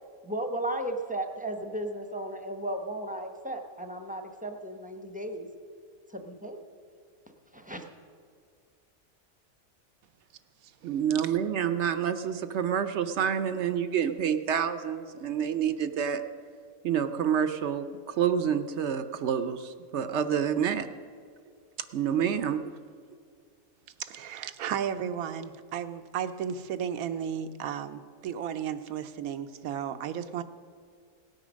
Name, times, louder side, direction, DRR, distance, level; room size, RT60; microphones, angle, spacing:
voice 1, 0.2-5.5 6.1-6.6 7.5-7.8, right 1 dB, 5° right, 4 dB, 0.7 m, -35 dB
voice 2, 10.8-16.2 16.8-20.9 21.9-22.6, right 8 dB, 60° right, 10 dB, 0.8 m, -28 dB
voice 3, 24.0-30.4, right 8 dB, 85° right, 10 dB, 1.1 m, -34 dB
17.0 x 9.1 x 6.2 m, 2.1 s
omnidirectional pair, 1.5 m